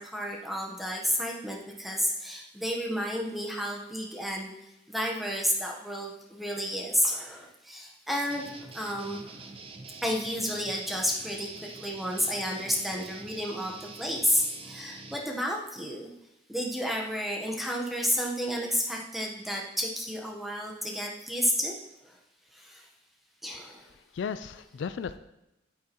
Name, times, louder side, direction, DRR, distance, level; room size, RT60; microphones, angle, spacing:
voice 1, 0.0-4.5 4.9-8.4 8.7-9.5 10.0-16.1 16.5-21.7 22.0-22.2 22.5-22.9 23.4-23.9, equal, ahead, -1 dB, 1.0 m, -31 dB
sound 1, 8.3-15.2, right 3 dB, 30° right, 0.6 m, -46 dB
voice 2, 24.1-25.2, left 6 dB, 65° left, 12 dB, 0.3 m, -35 dB
8.5 x 8.2 x 3.0 m, 0.92 s
head